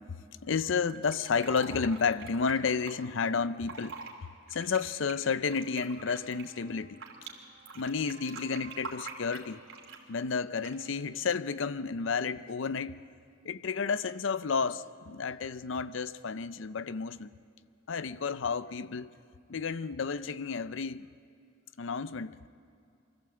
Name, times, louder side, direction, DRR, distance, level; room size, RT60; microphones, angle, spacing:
voice 1, 0.4-4.0 4.5-7.0 7.8-9.6 10.1-13.0 13.4-17.3 17.9-19.1 19.5-21.1 21.8-22.5, left 5 dB, 70° left, 0.5 m, -31 dB
Fill (with liquid), 0.9-2.9 3.5-4.1 4.5-7.3 7.7-10.1 10.6-11.0, right 5 dB, 85° right, 2.9 m, -45 dB
sound 1, 5.8-12.0, right 4 dB, 45° right, 1.5 m, -58 dB
24.0 x 14.5 x 7.9 m
head